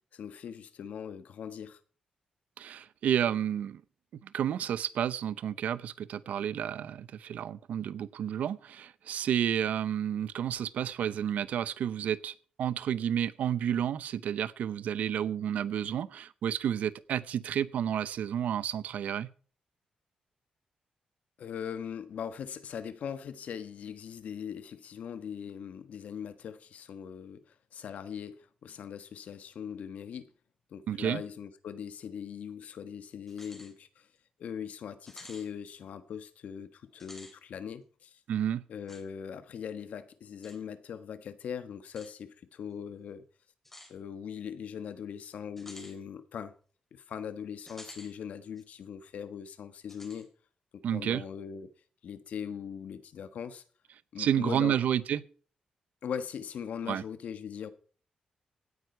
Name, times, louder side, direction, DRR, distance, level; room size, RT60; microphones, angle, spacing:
voice 1, 0.1-1.8 21.4-30.3 30.7-34.1 34.4-38.2 38.7-43.2 43.9-46.5 46.9-50.3 50.7-51.7 52.0-53.6 54.1-54.8 56.0-57.7, left 7 dB, 75° left, 1.4 m, -40 dB
voice 2, 2.6-3.8 4.1-19.3 30.9-31.2 38.3-38.6 50.8-51.2 54.2-55.2 56.9-57.0, right 9 dB, 85° right, 0.7 m, -31 dB
sound 1, 33.3-33.7 34.2-34.3 35.1-35.5 36.9-37.4 38.9-39.0 40.4-40.6 41.9-42.1 43.7-43.9 45.6-46.0 47.7-48.1 48.6-48.7 49.9-50.3, left 1 dB, 10° left, 3.4 m, -50 dB
16.5 x 9.5 x 4.6 m
cardioid pair, 120°, 2 cm